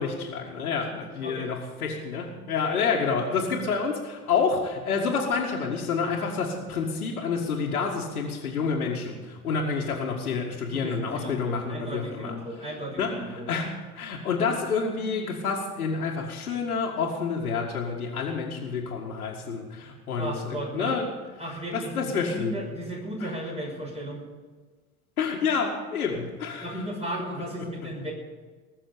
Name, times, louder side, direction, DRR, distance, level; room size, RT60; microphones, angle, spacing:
voice 1, 0.0-12.3 13.0-21.1 21.7-22.6 23.2-23.3 25.2-26.8, left 5 dB, 75° left, -5 dB, 2.0 m, -28 dB
voice 2, 0.9-1.5 2.7-2.8 10.7-13.5 20.2-21.0 21.4-24.2 26.6-28.1, right 1 dB, 15° right, -1 dB, 6.0 m, -35 dB
20.0 x 6.9 x 8.6 m, 1.4 s
figure-of-eight pair, 80°, 44 cm